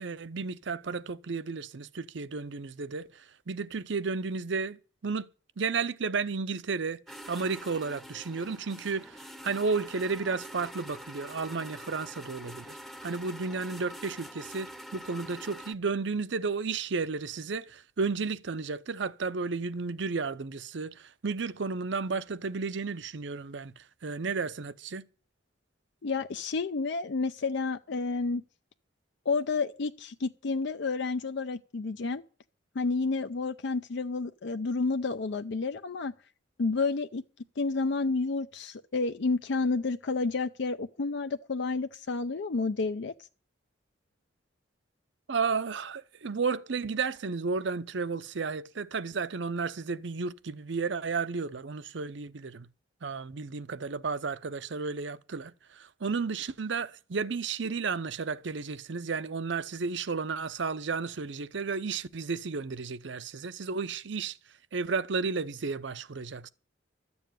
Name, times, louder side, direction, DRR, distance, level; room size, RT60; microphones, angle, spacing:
voice 1, 0.0-5.3 5.6-25.0 45.3-52.7 53.0-64.4 64.7-66.5, right 4 dB, 65° right, 0.7 m, -33 dB
sound 1, 7.1-15.7, equal, ahead, 0.7 m, -45 dB
voice 2, 26.0-28.4 29.3-32.2 32.7-36.1 36.6-37.2 37.6-43.1, left 4 dB, 65° left, 0.5 m, -30 dB
13.0 x 7.1 x 9.1 m
head